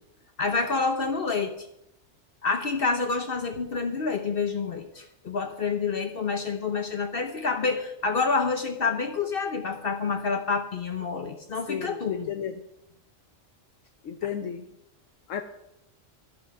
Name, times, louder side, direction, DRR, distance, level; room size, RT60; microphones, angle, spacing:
voice 1, 0.4-1.7 2.4-12.3, left 4 dB, 50° left, 6 dB, 1.0 m, -28 dB
voice 2, 11.7-12.6 14.0-14.7 15.3-15.4, left 8 dB, 85° left, 7 dB, 1.1 m, -33 dB
12.0 x 11.5 x 4.7 m, 0.83 s
omnidirectional pair, 1.3 m